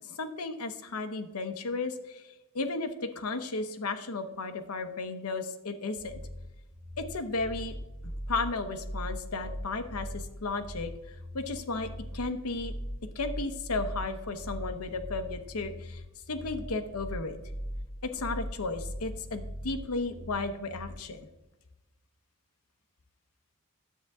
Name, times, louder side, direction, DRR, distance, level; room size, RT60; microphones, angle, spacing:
voice 1, 0.0-2.3 2.5-6.2 7.0-7.7 8.3-10.9 11.3-12.7 13.1-16.0 16.3-17.4 18.0-21.2, left 3 dB, 75° left, 7 dB, 0.9 m, -34 dB
sound 1, 6.0-21.0, equal, 25° left, 2.1 m, -40 dB
10.0 x 7.9 x 3.6 m, 1.0 s
head